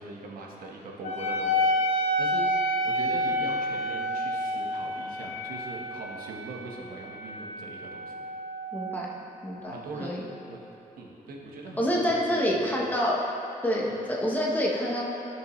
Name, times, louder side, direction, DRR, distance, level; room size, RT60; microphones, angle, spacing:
voice 1, 0.0-8.2 9.7-10.2 10.5-10.6 11.0-12.8 13.9-14.0, right 2 dB, 80° right, -1 dB, 1.2 m, -41 dB
Wind instrument woodwind instrument, 1.0-10.0, equal, 55° left, 0.9 m, -30 dB
voice 2, 8.7-9.1 9.4-9.7 10.0-10.2 11.8-13.2 13.6-15.0, equal, 10° left, -4 dB, 1.0 m, -27 dB
14.0 x 6.3 x 3.1 m, 2.9 s
wide cardioid pair, 170°, 15 cm